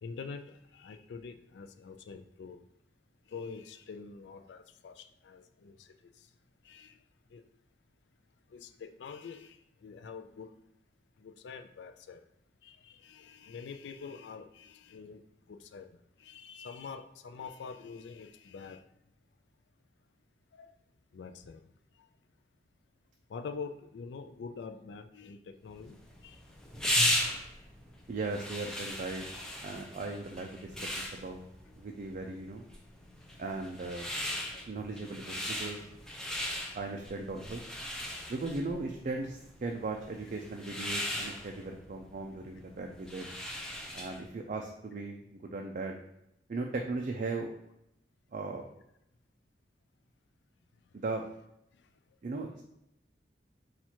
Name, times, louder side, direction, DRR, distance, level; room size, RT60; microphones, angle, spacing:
voice 1, 0.0-2.7 3.2-6.4 6.6-7.0 7.3-7.5 8.5-10.6 11.2-12.3 12.6-18.9 20.5-20.8 21.1-22.1 23.3-26.6 34.5-34.7 50.9-51.0 51.7-52.2, left 5 dB, 75° left, 8 dB, 0.4 m, -46 dB
sound 1, 25.8-44.3, left 1 dB, 5° left, 0.6 m, -37 dB
voice 2, 28.1-29.2 29.6-31.4 31.8-32.7 33.4-34.1 34.7-35.8 36.7-37.6 38.3-43.3 43.9-45.9 46.5-47.5 48.3-48.6 50.9-51.2 52.2-52.6, right 3 dB, 45° right, 2 dB, 0.4 m, -37 dB
4.3 x 2.4 x 4.3 m, 0.82 s
head